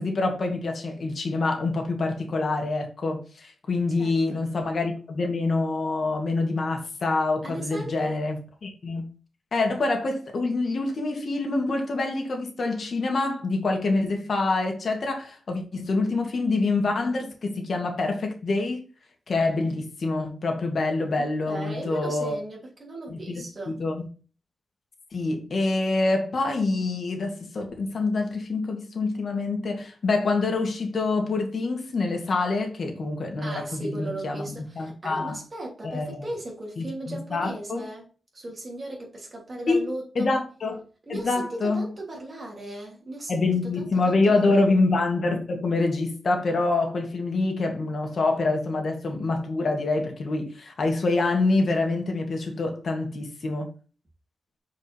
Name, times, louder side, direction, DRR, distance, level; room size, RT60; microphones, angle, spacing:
voice 1, 0.0-9.0 9.5-18.8 19.3-22.3 23.1-24.1 25.1-35.4 35.8-36.2 36.8-37.8 39.7-39.9 40.1-40.8 41.1-41.8 43.3-53.7, left 3 dB, 55° left, 1.9 m, -26 dB
voice 2, 4.0-4.4 7.4-8.2 21.2-23.8 33.4-38.1 38.3-40.3 41.1-43.3 43.6-44.7, right 1 dB, 35° right, 2.9 m, -37 dB
6.0 x 4.8 x 4.4 m
wide cardioid pair, 125°, 0 cm